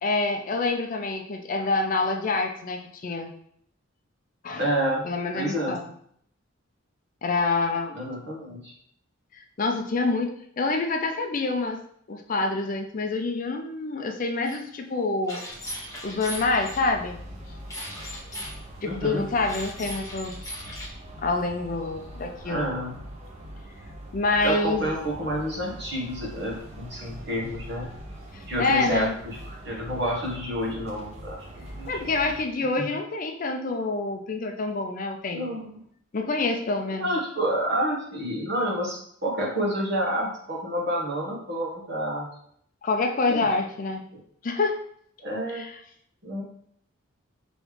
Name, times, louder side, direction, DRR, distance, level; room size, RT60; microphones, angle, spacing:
voice 1, 0.0-3.3 4.4-4.6 5.0-5.8 7.2-8.0 9.6-11.8 12.1-15.4 16.0-17.2 18.8-20.4 21.2-22.7 24.1-24.9 28.3-29.2 31.9-35.5 36.1-37.1 42.8-44.0 44.4-44.8 45.5-45.8, left 3 dB, 40° left, 3 dB, 0.4 m, -27 dB
voice 2, 4.6-5.1 5.3-5.8 7.9-8.7 18.8-19.3 22.4-22.9 24.4-27.9 28.5-32.1 32.8-32.9 35.3-35.8 37.0-42.3 43.3-43.5 44.1-44.2 45.2-45.6 46.2-46.4, equal, 55° right, -2 dB, 1.2 m, -29 dB
sound 1, 14.4-14.6 15.3-16.8 17.7-18.6 19.4-20.9, left 1 dB, 15° left, 1.0 m, -38 dB
sound 2, 15.5-32.4, right 1 dB, 30° right, 0.7 m, -43 dB
5.1 x 3.0 x 3.2 m, 0.67 s
head